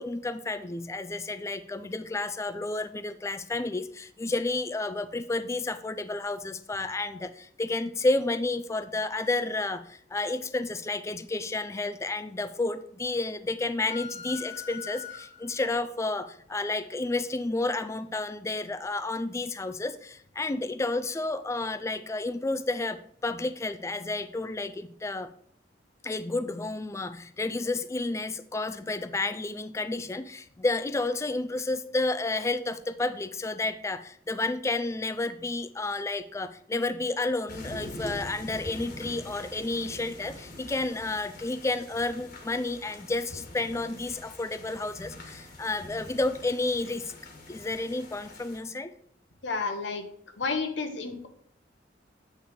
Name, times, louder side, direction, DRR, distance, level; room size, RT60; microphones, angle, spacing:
voice 1, 0.0-25.3 26.0-47.1 47.5-48.9, left 2 dB, 15° left, 12 dB, 0.3 m, -31 dB
sound 1, 13.9-15.7, left 8 dB, 40° left, 1.1 m, -42 dB
sound 2, 37.5-48.6, left 1 dB, 55° left, 1.5 m, -44 dB
voice 2, 49.4-50.0 50.4-51.3, left 4 dB, 90° left, 6 dB, 1.1 m, -31 dB
8.8 x 3.4 x 5.1 m, 0.63 s
head